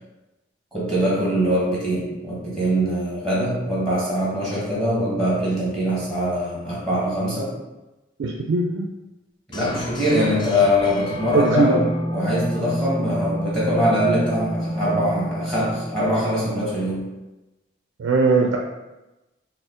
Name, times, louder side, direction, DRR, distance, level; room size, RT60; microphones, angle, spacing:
voice 1, 0.7-7.5 9.5-17.0, equal, 5° left, -7 dB, 1.0 m, -22 dB
voice 2, 8.2-8.8 10.1-10.4 11.3-11.7 18.0-18.6, right 3 dB, 75° right, 1 dB, 0.3 m, -20 dB
sound 1, 9.5-16.5, equal, 25° left, 0.4 m, -30 dB
4.2 x 2.0 x 3.6 m, 1.0 s
head